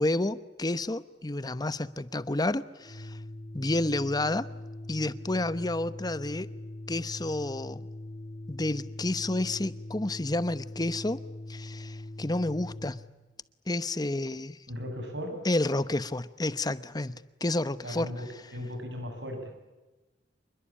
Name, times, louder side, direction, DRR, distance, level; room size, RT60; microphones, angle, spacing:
voice 1, 0.0-3.2 3.5-4.5 4.9-6.5 6.9-7.8 8.5-11.2 11.5-13.0 13.7-14.6 15.4-18.1, left 2 dB, 20° left, 0.9 m, -30 dB
Organ, 2.8-13.1, left 1 dB, 50° left, 1.8 m, -42 dB
voice 2, 14.7-15.5 17.8-19.7, equal, 70° right, 7.6 m, -37 dB
27.0 x 22.0 x 8.6 m
head